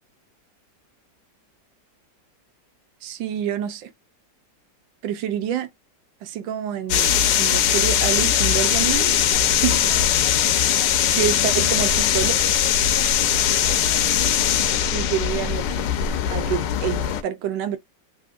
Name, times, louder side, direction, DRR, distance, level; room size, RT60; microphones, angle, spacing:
voice 1, 3.0-3.9 5.0-5.7 6.2-9.1 9.5-9.8 11.1-12.4 14.9-15.8 16.3-17.8, right 10 dB, 90° right, 1.4 m, -27 dB
sound 1, 6.9-17.2, left 9 dB, 75° left, 1.2 m, -20 dB
3.5 x 2.7 x 2.4 m
omnidirectional pair, 2.0 m